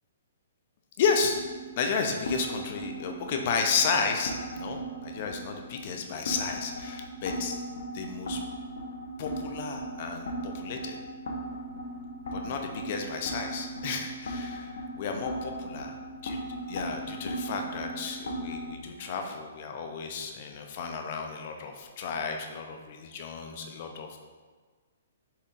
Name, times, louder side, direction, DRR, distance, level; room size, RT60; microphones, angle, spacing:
voice 1, 1.0-1.4 1.8-7.5 7.9-8.4 9.2-11.0 12.3-16.0 16.2-16.4 16.7-24.2, left 5 dB, 50° left, 4 dB, 0.5 m, -32 dB
sound 1, 1.3-18.7, right 1 dB, 70° left, 0.8 m, -38 dB
5.1 x 4.2 x 2.4 m, 1.4 s
hypercardioid pair, 140°, 0 cm